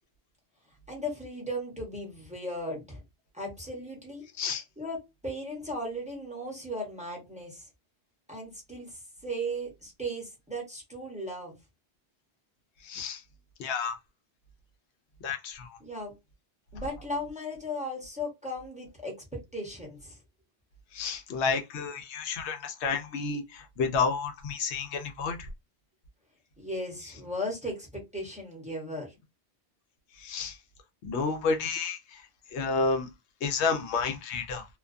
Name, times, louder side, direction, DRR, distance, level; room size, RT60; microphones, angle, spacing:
voice 1, 0.9-3.0 3.3-4.2 4.8-7.7 8.3-11.6 15.8-16.1 16.7-20.2 26.6-29.1, equal, 5° right, 0.8 m, -36 dB
voice 2, 12.8-13.2 13.6-14.0 15.2-15.8 20.9-25.5 30.2-30.6 31.0-32.2 32.5-33.1 33.4-34.6, left 5 dB, 80° left, 0.8 m, -30 dB
2.4 x 2.2 x 2.4 m
omnidirectional pair, 1.1 m